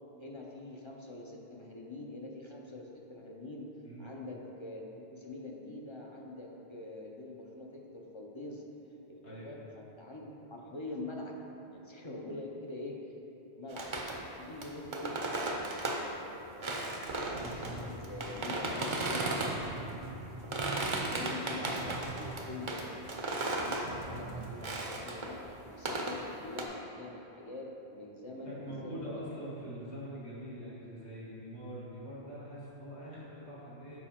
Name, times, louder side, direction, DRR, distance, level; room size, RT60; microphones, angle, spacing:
voice 1, 0.2-3.7 4.0-8.6 9.1-13.0 13.6-14.0 14.3-15.2 16.1-19.7 20.5-29.1, left 2 dB, 35° left, -1 dB, 0.5 m, -45 dB
sound 1, 13.7-16.1 16.6-19.7 20.3-23.9 24.6-25.5 25.9-26.6, right 2 dB, 35° right, 0.5 m, -35 dB
sound 2, 16.8-24.8, right 3 dB, 80° right, 1.3 m, -47 dB
voice 2, 28.4-34.0, equal, 85° left, -8 dB, 2.2 m, -44 dB
7.1 x 5.3 x 4.3 m, 3.0 s
omnidirectional pair, 1.1 m